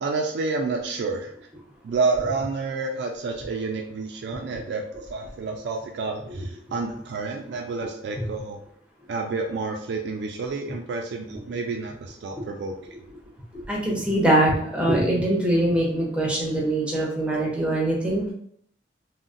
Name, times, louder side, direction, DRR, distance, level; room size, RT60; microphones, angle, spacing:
voice 1, 0.0-1.3 1.8-8.6 9.1-12.7, right 3 dB, 65° right, 2 dB, 0.3 m, -29 dB
voice 2, 13.5-18.3, right 1 dB, 5° right, -3 dB, 0.7 m, -23 dB
3.7 x 2.1 x 2.5 m, 0.65 s
head